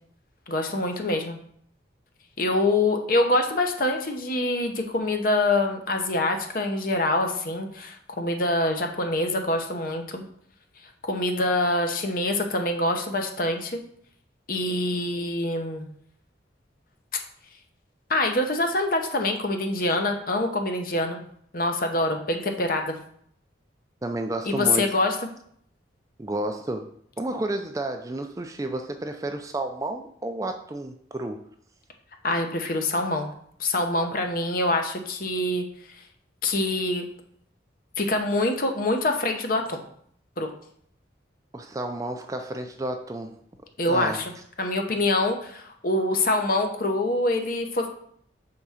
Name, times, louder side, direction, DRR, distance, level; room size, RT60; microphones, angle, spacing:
voice 1, 0.5-1.4 2.4-10.2 11.0-13.8 14.5-15.9 18.1-21.2 21.5-23.0 24.4-25.2 32.2-33.3 33.6-35.6 36.4-37.0 38.0-39.8 40.4-40.5 43.8-44.3 44.6-47.9, left 2 dB, 50° left, 4 dB, 0.8 m, -25 dB
voice 2, 24.0-25.0 26.2-26.9 27.2-31.4 41.5-43.3 43.9-44.2, right 2 dB, 20° right, 6 dB, 0.4 m, -31 dB
4.8 x 3.6 x 5.6 m, 0.65 s
head